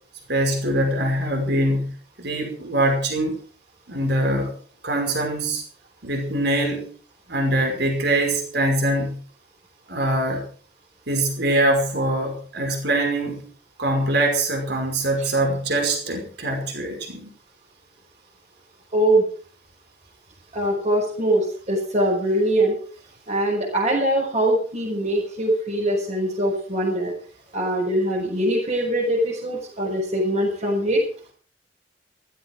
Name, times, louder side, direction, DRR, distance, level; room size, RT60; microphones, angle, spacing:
voice 1, 0.3-3.4 3.9-4.5 4.8-5.6 6.0-6.9 7.3-9.2 9.9-10.4 11.1-13.4 13.8-17.3, right 1 dB, 65° right, 3 dB, 5.4 m, -23 dB
voice 2, 18.9-19.2 20.5-22.8 23.3-27.1 27.5-31.0, right 1 dB, 40° right, -4 dB, 5.9 m, -22 dB
15.5 x 15.5 x 4.8 m, 0.43 s
head